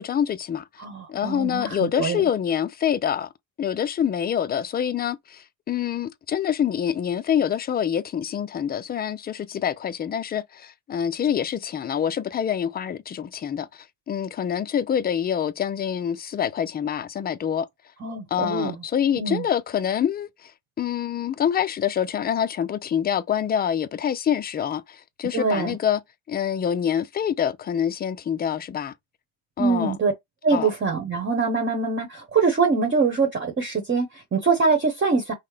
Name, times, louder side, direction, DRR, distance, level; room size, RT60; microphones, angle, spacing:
voice 1, 0.0-0.6 1.1-3.3 3.6-17.7 18.3-20.5 20.8-26.0 26.3-28.9 29.6-29.9 30.5-30.7, left 9 dB, 25° left, 0.3 m, -26 dB
voice 2, 0.8-2.2 18.0-18.8 19.2-19.4 25.3-25.8 29.6-30.1 30.4-35.3, right 4 dB, 25° right, 1.2 m, -23 dB
5.5 x 2.1 x 3.3 m
cardioid pair, 130°, 46 cm